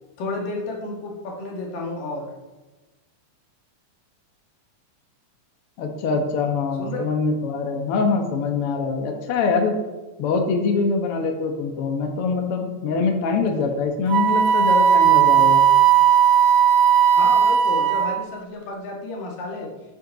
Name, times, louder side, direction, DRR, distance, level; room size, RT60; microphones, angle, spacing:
voice 1, 0.2-2.2 6.8-7.1 17.2-19.7, left 2 dB, 90° left, -1 dB, 3.6 m, -31 dB
voice 2, 5.8-9.7 10.2-15.6, left 4 dB, 55° left, 3 dB, 1.8 m, -23 dB
Wind instrument woodwind instrument, 14.1-18.3, right 8 dB, 70° right, 1.9 m, -16 dB
12.0 x 8.4 x 4.1 m, 1.2 s
omnidirectional pair, 3.7 m